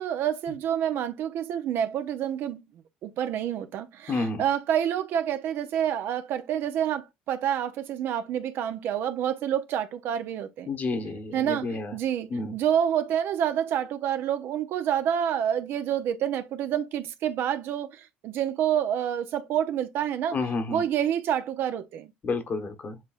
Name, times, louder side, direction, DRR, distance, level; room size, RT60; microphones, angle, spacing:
voice 1, 0.0-2.6 3.0-10.7 11.3-20.4 20.7-22.1, right 9 dB, 60° right, 0.6 m, -28 dB
voice 2, 4.1-4.4 10.7-11.9 12.3-12.6 20.3-20.8 22.2-23.0, left 3 dB, 40° left, 1.1 m, -30 dB
7.4 x 2.9 x 2.4 m
hypercardioid pair, 70°, 4 cm